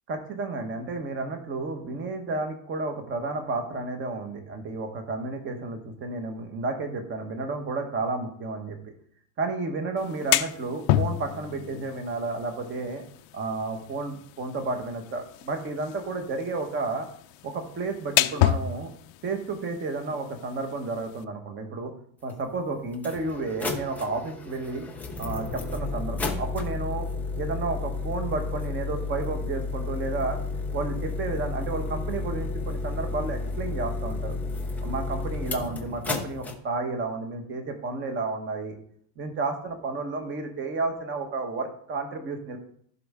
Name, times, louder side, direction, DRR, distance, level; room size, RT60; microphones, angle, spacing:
voice 1, 0.1-8.8 9.4-13.0 13.3-17.1 17.4-18.9 19.2-21.9 22.2-24.9 25.2-27.1 27.4-30.4 30.7-34.3 34.8-38.8 39.2-42.6, right 3 dB, 25° right, 5 dB, 1.2 m, -31 dB
sound 1, 10.0-21.2, left 14 dB, 50° left, 0.6 m, -31 dB
sound 2, 22.3-22.4 22.9-36.5, left 3 dB, 5° left, 0.3 m, -32 dB
15.0 x 5.5 x 3.6 m, 0.63 s
cardioid pair, 160°, 47 cm